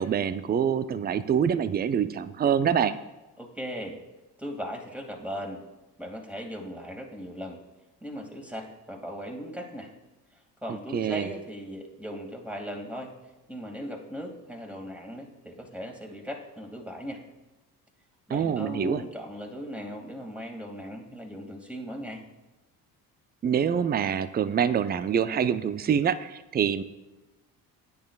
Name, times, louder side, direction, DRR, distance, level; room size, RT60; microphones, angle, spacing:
voice 1, 0.0-3.0 10.7-11.3 18.3-19.0 23.4-26.8, right 8 dB, 20° right, 14 dB, 0.5 m, -25 dB
voice 2, 3.4-4.0 4.4-5.6 6.0-7.6 8.0-9.9 10.6-13.1 13.5-17.2 18.3-22.2, equal, 5° right, 1 dB, 2.2 m, -38 dB
16.5 x 9.4 x 2.4 m, 1.0 s
hypercardioid pair, 50°, 48 cm